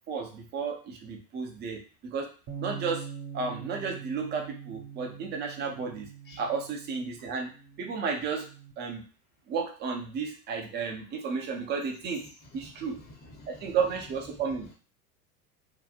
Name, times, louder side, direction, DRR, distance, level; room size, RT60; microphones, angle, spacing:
voice 1, 0.1-2.3 2.6-3.1 3.3-6.1 6.4-7.5 7.8-8.5 8.8-9.0 9.5-12.2 12.5-13.0 13.5-14.7, right 5 dB, 20° right, 2 dB, 0.5 m, -32 dB
Bass guitar, 2.5-8.7, right 7 dB, 60° right, 1.2 m, -43 dB
voice 2, 12.5-13.8 14.3-14.4, left 1 dB, 20° left, 0 dB, 0.8 m, -50 dB
2.9 x 2.1 x 2.4 m, 0.37 s
hypercardioid pair, 105°, 47 cm